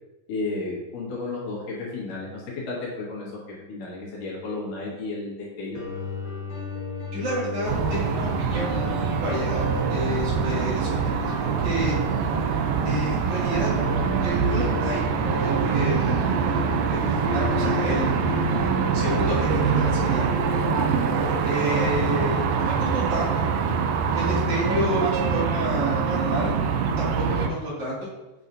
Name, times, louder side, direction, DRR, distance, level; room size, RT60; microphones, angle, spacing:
voice 1, 0.3-5.8 11.8-11.9, left 3 dB, 70° left, -5 dB, 3.1 m, -33 dB
sound 1, 5.7-21.7, left 4 dB, 50° left, 3.5 m, -34 dB
voice 2, 7.1-11.1 11.4-12.0 12.8-13.7 14.2-15.0 15.4-16.5 16.9-18.3 18.9-20.3 21.4-23.3 24.1-26.6 27.0-28.1, equal, 60° right, -7 dB, 3.5 m, -29 dB
sound 2, 7.7-27.5, right 6 dB, 85° right, 2.4 m, -24 dB
8.2 x 5.7 x 2.7 m, 1.1 s
omnidirectional pair, 4.0 m